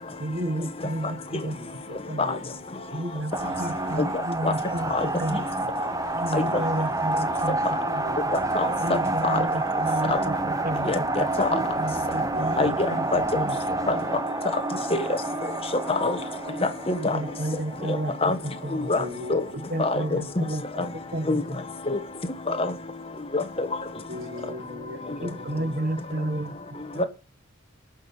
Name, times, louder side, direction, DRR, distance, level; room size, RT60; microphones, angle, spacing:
voice 1, 0.2-1.8 2.1-2.3 2.9-4.9 5.2-5.4 6.1-7.6 7.9-8.3 8.8-11.1 11.5-13.0 13.3-13.6 17.0-18.9 19.5-20.8 21.1-21.6 25.2-26.8, right 1 dB, 40° right, 1.3 m, -32 dB
voice 2, 1.4-3.0 3.7-4.0 6.3-6.6 7.4-8.2 9.8-9.9 12.3-13.2 14.7-14.8 16.0-16.1 18.9-19.4 20.9-21.5 24.1-25.8, left 2 dB, 70° right, 2.2 m, -42 dB
sound 1, 3.3-19.1, right 2 dB, 15° right, 0.6 m, -29 dB
voice 3, 10.8-11.6 12.6-12.7 13.1-13.2 13.9-14.0 14.9-15.0 15.9-16.2 16.6-17.2 17.9-18.4 18.9-19.0 19.3-19.4 19.8-20.2 21.3-21.4 21.9-22.0 22.5-22.7 23.3-23.7 27.0-27.1, left 3 dB, 25° left, 1.3 m, -24 dB
18.5 x 6.5 x 5.6 m
head